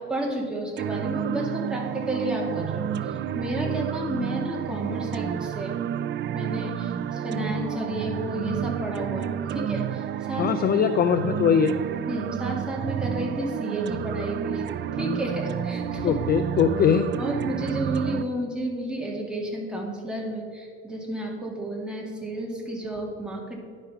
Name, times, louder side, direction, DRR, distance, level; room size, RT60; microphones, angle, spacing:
voice 1, 0.0-5.8 6.3-10.8 12.1-14.7 14.9-16.2 17.2-23.6, right 1 dB, 5° right, -2 dB, 2.2 m, -31 dB
sound 1, 0.8-18.2, right 9 dB, 40° right, 0.4 m, -30 dB
voice 2, 10.4-11.8 16.0-17.1, left 7 dB, 35° left, 10 dB, 0.4 m, -21 dB
10.5 x 5.2 x 5.8 m, 2.1 s
supercardioid pair, 105°, 29 cm